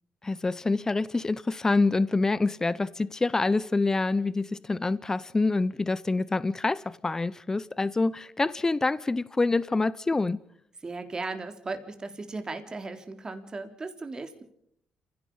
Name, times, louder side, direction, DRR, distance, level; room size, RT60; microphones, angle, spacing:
voice 1, 0.2-10.4, left 3 dB, 20° left, 0.7 m, -26 dB
voice 2, 10.8-14.4, right 3 dB, 30° right, 3.6 m, -36 dB
29.0 x 16.5 x 5.5 m
supercardioid pair, 60°, 2 cm